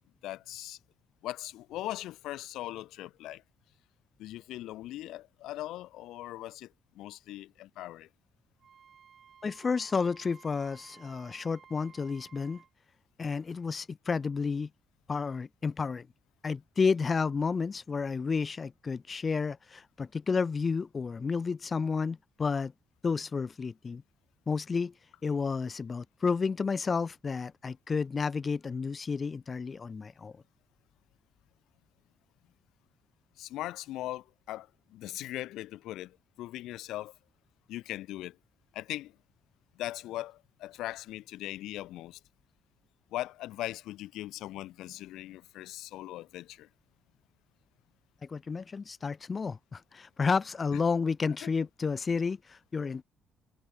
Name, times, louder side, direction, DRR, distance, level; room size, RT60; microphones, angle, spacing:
voice 1, 0.2-0.8 1.2-3.4 4.2-8.1 33.4-37.1 37.7-38.4 38.7-39.2 39.7-42.2 43.1-46.7 50.7-50.8 51.4-51.5, left 15 dB, 90° left, 0.6 m, -40 dB
Wind instrument woodwind instrument, 8.6-12.7, right 7 dB, 55° right, 2.2 m, -56 dB
voice 2, 9.4-12.6 13.2-14.7 15.1-16.1 16.4-22.7 23.0-24.0 24.5-24.9 25.2-30.4 48.2-53.0, left 5 dB, 35° left, 0.4 m, -31 dB
cardioid pair, 90°, 0 cm